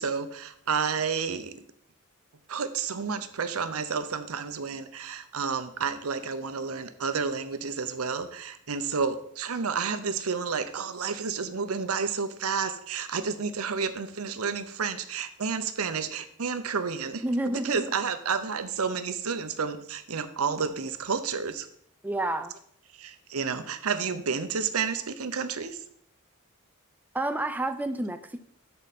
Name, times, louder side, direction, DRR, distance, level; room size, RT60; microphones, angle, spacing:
voice 1, 0.0-1.6 2.5-21.7 22.9-25.8, right 5 dB, 85° right, 10 dB, 0.8 m, -30 dB
voice 2, 17.2-17.9 22.0-22.5 27.1-28.4, right 1 dB, 10° right, 8 dB, 0.4 m, -29 dB
12.0 x 4.8 x 4.2 m, 0.67 s
head